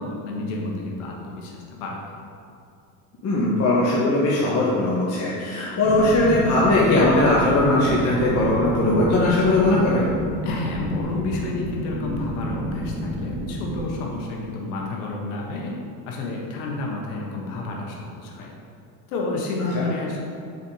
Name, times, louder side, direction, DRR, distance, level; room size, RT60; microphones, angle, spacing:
voice 1, 0.0-2.1 10.4-15.7 16.1-18.5 19.1-20.2, left 2 dB, 85° left, 0 dB, 1.4 m, -30 dB
voice 2, 3.2-10.1 19.7-19.8, left 2 dB, 35° left, -6 dB, 1.2 m, -19 dB
sound 1, 5.8-13.8, equal, 20° right, 1.3 m, -30 dB
6.7 x 4.4 x 4.8 m, 2.5 s
supercardioid pair, 110°, 43 cm